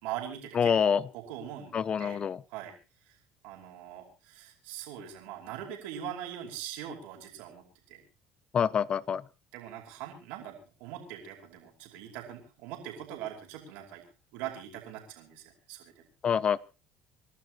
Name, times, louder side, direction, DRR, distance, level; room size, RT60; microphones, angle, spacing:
voice 1, 0.0-2.2 2.5-2.7 3.1-3.2 3.4-8.0 9.5-14.0 14.3-16.1, right 10 dB, 80° right, 2 dB, 5.1 m, -42 dB
voice 2, 0.5-1.0 1.7-2.4 8.5-9.2 16.2-16.6, left 7 dB, 40° left, 20 dB, 0.7 m, -26 dB
28.0 x 12.5 x 3.0 m, 0.32 s
supercardioid pair, 85°, 3 cm